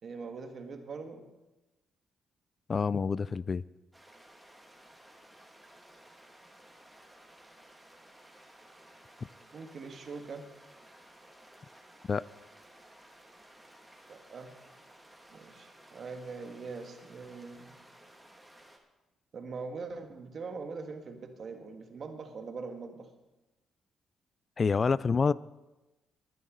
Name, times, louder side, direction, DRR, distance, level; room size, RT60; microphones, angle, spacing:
voice 1, 0.0-1.2 9.5-10.5 14.1-14.5 15.3-17.7 19.3-23.1, right 4 dB, 50° right, 5 dB, 1.7 m, -42 dB
voice 2, 2.7-3.6 12.1-12.2 24.6-25.3, left 5 dB, 35° left, 19 dB, 0.3 m, -27 dB
sound 1, 3.9-18.8, right 1 dB, 10° right, 2.1 m, -56 dB
20.5 x 9.4 x 3.9 m, 1.1 s
cardioid pair, 90°, 0 cm